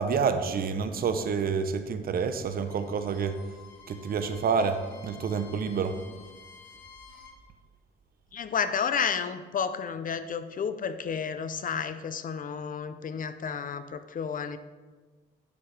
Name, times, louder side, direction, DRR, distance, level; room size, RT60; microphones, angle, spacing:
voice 1, 0.0-3.4 3.9-6.0, right 5 dB, 50° right, 8 dB, 0.7 m, -28 dB
Bowed string instrument, 2.4-7.4, left 5 dB, 65° left, 1.4 m, -52 dB
voice 2, 8.3-14.6, left 6 dB, 45° left, 11 dB, 0.6 m, -31 dB
9.4 x 6.9 x 3.3 m, 1.4 s
cardioid pair, 90°, 20 cm